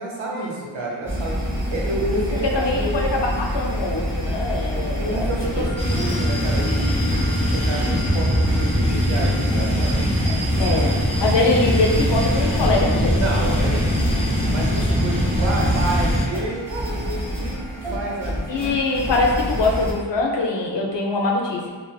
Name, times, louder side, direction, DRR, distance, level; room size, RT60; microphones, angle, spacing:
voice 1, 0.0-1.4 1.7-3.2 4.7-10.0 10.6-10.8 13.2-17.6 17.9-18.7, right 2 dB, 80° right, -3 dB, 0.8 m, -30 dB
sound 1, 1.0-19.9, equal, 5° right, 1.1 m, -28 dB
voice 2, 2.5-5.7 10.3-13.2 18.5-21.7, left 2 dB, 65° left, -1 dB, 0.6 m, -23 dB
sound 2, 5.8-16.3, equal, 15° left, 0.5 m, -21 dB
3.1 x 2.3 x 2.2 m, 1.5 s
wide cardioid pair, 70°, 47 cm